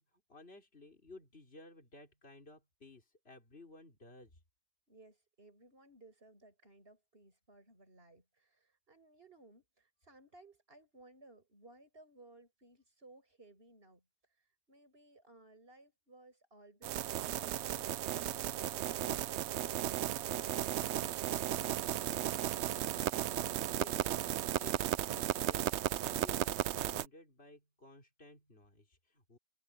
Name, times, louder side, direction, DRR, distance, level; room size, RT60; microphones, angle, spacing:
voice 1, 0.0-4.4 23.7-24.2 24.6-25.7 26.0-29.4, left 2 dB, 55° left, 4.6 m, -56 dB
voice 2, 4.9-14.0 14.3-22.3, right 2 dB, 55° right, 6.5 m, -60 dB
sound 1, 16.8-27.1, right 12 dB, 70° right, 0.8 m, -35 dB
omnidirectional pair, 1.2 m